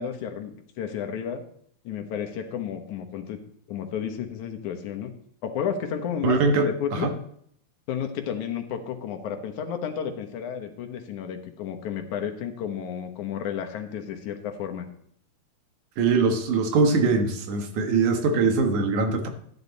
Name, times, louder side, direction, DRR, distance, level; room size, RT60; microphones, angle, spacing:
voice 1, 0.0-1.4 1.8-3.4 3.7-5.1 5.4-7.1 7.9-14.9, left 8 dB, 90° left, 5 dB, 2.7 m, -32 dB
voice 2, 6.2-7.1 16.0-19.3, right 4 dB, 90° right, 6 dB, 3.0 m, -22 dB
13.5 x 10.5 x 4.1 m, 0.66 s
omnidirectional pair, 3.3 m